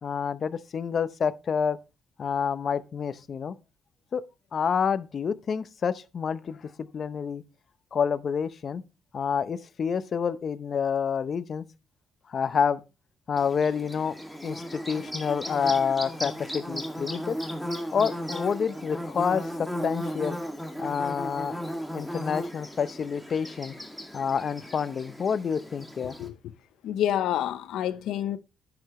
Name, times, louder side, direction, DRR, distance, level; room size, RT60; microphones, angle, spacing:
voice 1, 0.0-1.8 2.2-3.5 4.1-4.2 4.5-7.4 7.9-8.8 9.1-11.6 12.3-12.8 13.3-14.1 14.4-17.4 17.9-20.4 20.8-21.5 21.9-23.7 24.1-26.1, left 6 dB, 50° left, 0.7 m, -28 dB
Bird / Buzz, 13.4-26.3, equal, ahead, 2.1 m, -36 dB
voice 2, 26.8-28.4, left 11 dB, 85° left, 0.8 m, -28 dB
10.5 x 6.9 x 3.1 m
cardioid pair, 90°, 0 cm